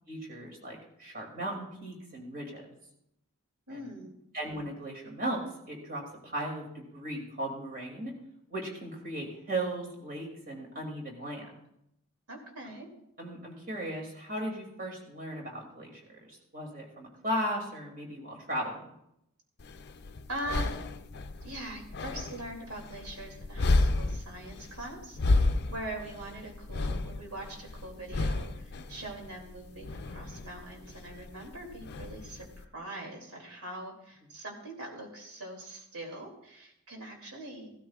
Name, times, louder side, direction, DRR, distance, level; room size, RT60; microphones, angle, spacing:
voice 1, 0.1-2.7 3.7-4.0 4.3-8.2 8.5-11.5 13.2-18.9, right 1 dB, 40° right, -1 dB, 2.6 m, -37 dB
voice 2, 3.7-4.1 12.3-12.9 20.3-20.7 21.4-37.7, right 1 dB, 85° right, 0 dB, 2.8 m, -42 dB
sound 1, 19.6-32.6, left 2 dB, 50° left, 0.5 m, -32 dB
15.5 x 13.0 x 2.4 m, 0.79 s
head